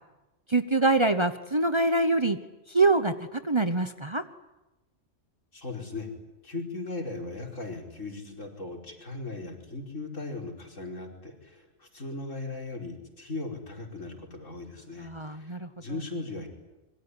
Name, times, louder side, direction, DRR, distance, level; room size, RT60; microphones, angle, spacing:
voice 1, 0.5-2.4 2.7-4.2 15.0-15.7, right 2 dB, 25° right, 9 dB, 1.0 m, -24 dB
voice 2, 5.5-6.1 6.4-16.5, left 3 dB, 75° left, 1 dB, 5.3 m, -38 dB
26.0 x 22.5 x 9.9 m, 1.0 s
omnidirectional pair, 1.3 m